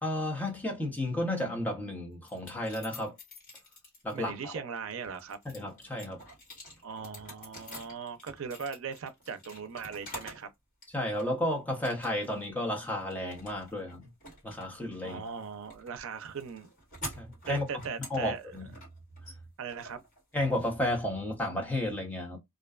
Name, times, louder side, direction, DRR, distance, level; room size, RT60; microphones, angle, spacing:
voice 1, 0.0-3.2 4.0-4.6 5.4-6.2 10.9-14.1 14.4-15.2 17.2-17.6 18.1-18.7 20.3-22.4, left 1 dB, 10° left, 0.7 m, -32 dB
sound 1, 2.3-4.3 4.8-10.5 10.8-11.4 11.8-12.4 12.7-20.7, left 1 dB, 40° left, 1.5 m, -48 dB
voice 2, 4.1-5.4 6.8-10.5 15.0-16.7 17.5-18.6 19.6-20.0, right 6 dB, 75° right, 0.5 m, -39 dB
2.5 x 2.2 x 2.3 m
head